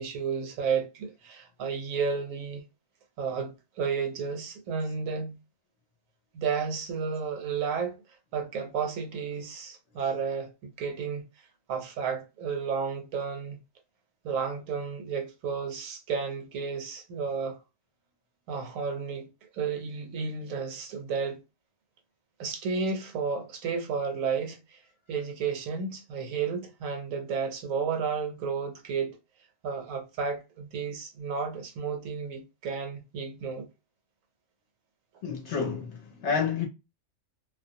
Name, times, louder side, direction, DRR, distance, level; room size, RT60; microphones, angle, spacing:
voice 1, 0.0-2.6 3.2-5.3 6.3-8.0 8.3-10.5 10.8-11.2 11.7-13.6 14.2-17.6 18.5-19.3 19.5-21.4 22.4-24.8 25.1-29.2 29.6-33.7, right 5 dB, 70° right, 1.0 m, -32 dB
voice 2, 35.2-36.7, left 6 dB, 60° left, 0.8 m, -29 dB
2.5 x 2.1 x 2.6 m
omnidirectional pair, 1.5 m